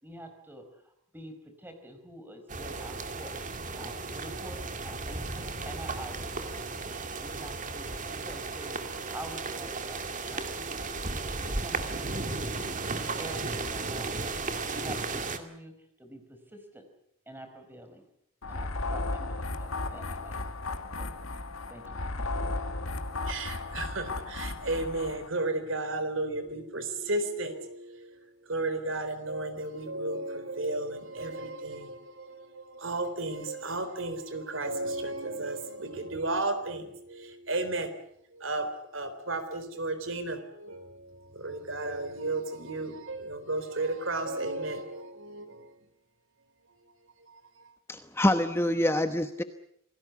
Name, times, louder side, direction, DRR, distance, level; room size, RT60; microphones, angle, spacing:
voice 1, 0.0-3.4 3.7-6.5 7.2-11.0 11.4-12.9 13.2-14.2 14.7-16.8 17.3-18.0 18.5-20.4 20.9-21.1 21.7-22.0, right 1 dB, 10° right, 4.7 m, -47 dB
sound 1, 2.5-15.4, right 3 dB, 35° right, 2.3 m, -35 dB
sound 2, 18.4-25.3, left 2 dB, 75° left, 1.8 m, -35 dB
voice 2, 23.3-37.9 38.3-45.7 47.3-47.7, right 2 dB, 65° right, 3.8 m, -34 dB
voice 3, 47.9-49.4, left 1 dB, 10° left, 1.0 m, -26 dB
27.5 x 19.0 x 8.3 m
head